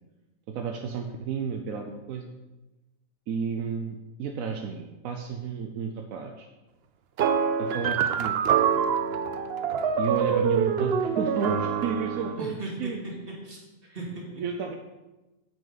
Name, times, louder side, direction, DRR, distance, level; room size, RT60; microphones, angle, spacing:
voice 1, 0.5-2.3 3.3-6.5 7.6-8.4 10.0-13.0 14.4-14.8, right 5 dB, 80° right, 3 dB, 1.1 m, -32 dB
sound 1, 7.2-12.4, right 7 dB, 60° right, 0.7 m, -25 dB
voice 2, 12.4-14.4, right 2 dB, 40° right, -3 dB, 2.5 m, -38 dB
9.4 x 7.9 x 4.0 m, 1.1 s
omnidirectional pair, 1.4 m